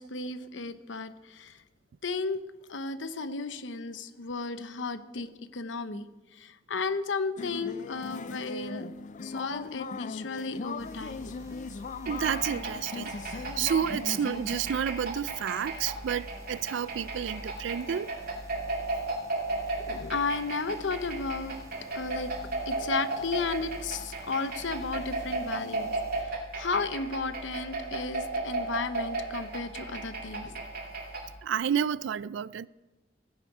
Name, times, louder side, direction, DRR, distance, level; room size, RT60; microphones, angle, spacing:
voice 1, 0.0-1.6 2.0-2.4 2.7-8.9 9.2-11.3 19.9-21.6 21.9-22.3 22.6-30.7, left 4 dB, 75° left, 0.9 m, -34 dB
sound 1, 7.4-14.6, left 4 dB, 40° left, 0.4 m, -39 dB
sound 2, 10.8-26.2, equal, 15° right, 1.2 m, -49 dB
sound 3, 12.1-31.4, right 2 dB, 55° right, 2.4 m, -35 dB
voice 2, 12.1-18.1 31.4-32.7, right 8 dB, 75° right, 0.4 m, -30 dB
16.0 x 10.5 x 4.8 m
head